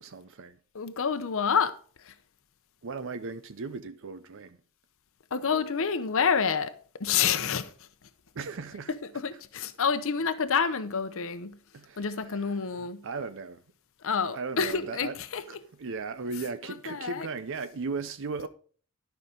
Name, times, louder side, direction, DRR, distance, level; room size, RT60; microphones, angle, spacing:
voice 1, 0.0-0.6 2.8-4.6 8.3-8.9 11.7-13.6 14.3-15.2 15.5-18.5, right 4 dB, 60° right, 0.6 m, -37 dB
voice 2, 0.7-1.7 2.1-2.2 5.3-6.7 7.0-7.7 9.1-11.5 12.0-13.0 14.0-15.4 16.9-17.3, left 6 dB, 65° left, 0.8 m, -28 dB
12.0 x 5.8 x 5.1 m
head